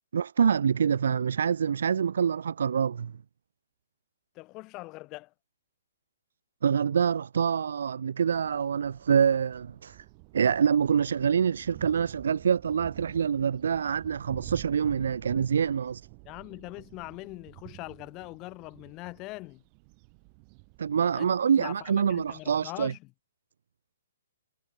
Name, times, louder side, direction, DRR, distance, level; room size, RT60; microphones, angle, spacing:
voice 1, 0.1-3.1 6.6-10.0 10.3-16.0 20.8-22.9, right 7 dB, 55° right, 1.1 m, -26 dB
voice 2, 4.3-5.3 16.2-19.6 21.1-21.3 21.6-23.1, left 22 dB, 25° left, 4.8 m, -42 dB
sound 1, 8.3-22.8, right 40 dB or more, 30° right, 4.1 m, -49 dB
figure-of-eight pair, 120°, 0 cm